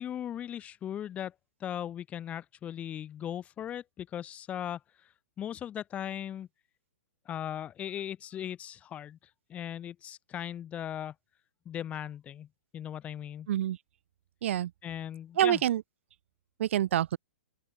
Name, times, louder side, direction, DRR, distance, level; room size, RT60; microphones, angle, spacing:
voice 1, 0.0-1.3 1.6-4.8 5.4-6.5 7.3-9.2 9.5-11.1 11.6-12.5 12.7-13.5 14.8-15.6, left 10 dB, 15° left, 3.0 m, -38 dB
voice 2, 15.4-15.8 16.6-17.2, right 11 dB, 60° right, 0.4 m, -26 dB
open air
hypercardioid pair, 155°, 8 cm